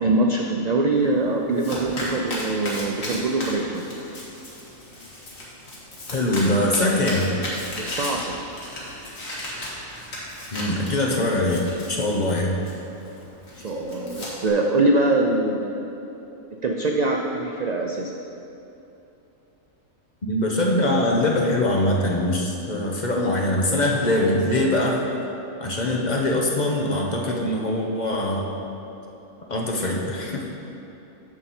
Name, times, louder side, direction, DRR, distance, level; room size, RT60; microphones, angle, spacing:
voice 1, 0.0-3.8 6.3-6.5 7.8-8.4 13.6-16.0 16.6-18.1, right 2 dB, 65° right, 1 dB, 0.4 m, -23 dB
Domestic sounds home sounds, 0.9-14.5, left 1 dB, 85° left, 2.0 m, -35 dB
voice 2, 6.1-7.3 10.5-11.6 11.9-12.6 20.2-25.0 25.6-28.5 29.5-30.4, left 1 dB, 40° left, -1 dB, 0.9 m, -22 dB
9.6 x 6.6 x 4.3 m, 2.9 s
omnidirectional pair, 1.4 m